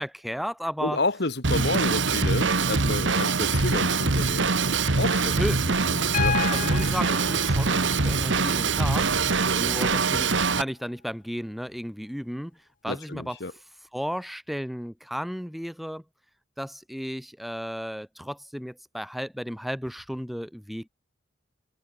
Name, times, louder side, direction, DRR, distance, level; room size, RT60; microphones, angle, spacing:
voice 1, 0.0-1.0 1.5-1.6 5.4-5.6 6.5-12.5 12.8-13.4 13.9-16.0 16.6-20.9, equal, ahead, 1.2 m, -33 dB
voice 2, 0.8-5.3 5.9-6.4 12.8-13.5, left 2 dB, 60° left, 1.7 m, -30 dB
Drum kit / Drum, 1.4-10.6, right 4 dB, 80° right, 1.6 m, -23 dB
Piano, 6.1-10.1 11.7-11.8, left 6 dB, 45° left, 1.0 m, -34 dB
head